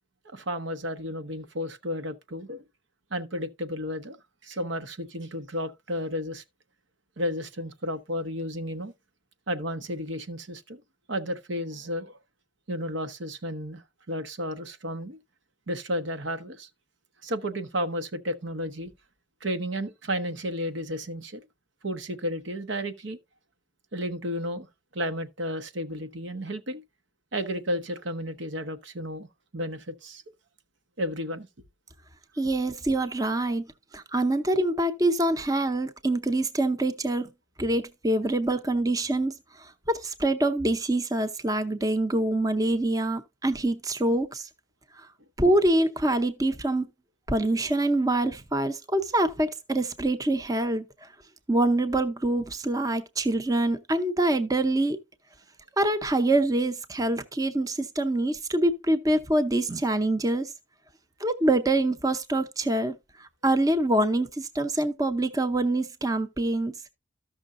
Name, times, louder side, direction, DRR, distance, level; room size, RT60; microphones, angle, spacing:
voice 1, 0.3-2.6 3.1-4.2 4.4-6.4 7.2-8.9 9.5-10.8 11.1-12.2 12.7-13.8 14.1-15.2 15.7-16.7 17.2-18.9 19.4-21.4 21.8-23.2 23.9-24.7 24.9-26.8 27.3-29.3 29.5-30.2 31.0-31.5 38.2-38.3, equal, 85° right, 1.0 m, -32 dB
voice 2, 32.4-33.6 33.9-37.3 37.6-44.5 45.4-46.8 47.3-50.9 51.5-55.0 55.8-60.5 61.2-66.7, right 1 dB, 20° right, 0.6 m, -25 dB
14.0 x 6.1 x 2.5 m
head